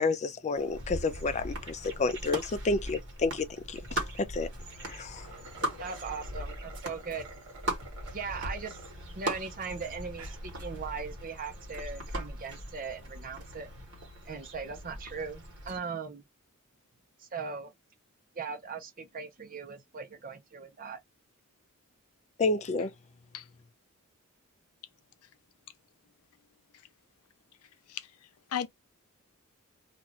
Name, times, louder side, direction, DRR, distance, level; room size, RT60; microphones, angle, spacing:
voice 1, 0.0-4.5 4.8-5.3 22.4-22.9, left 3 dB, 30° left, 0.4 m, -30 dB
sound 1, 0.5-15.8, right 1 dB, 55° right, 1.2 m, -39 dB
sound 2, 5.0-8.9 9.4-9.5 10.0-10.4, right 2 dB, 85° right, 1.0 m, -49 dB
voice 2, 5.8-7.3 8.1-8.8 9.1-13.7 14.2-16.2 17.2-17.7 18.4-21.0, right 5 dB, 40° right, 0.6 m, -39 dB
voice 3, 27.9-28.7, left 9 dB, 85° left, 0.5 m, -37 dB
2.6 x 2.4 x 3.0 m
head